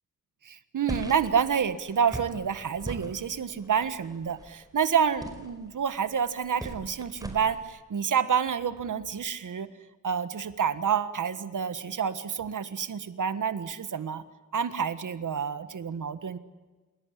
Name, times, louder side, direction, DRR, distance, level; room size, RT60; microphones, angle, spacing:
voice 1, 0.4-9.7 10.0-14.2 14.5-16.4, right 7 dB, 70° right, 12 dB, 1.6 m, -28 dB
sound 1, 0.9-7.6, right 1 dB, 10° right, 4.8 m, -41 dB
29.5 x 17.5 x 9.9 m, 1.2 s
wide cardioid pair, 105°, 32 cm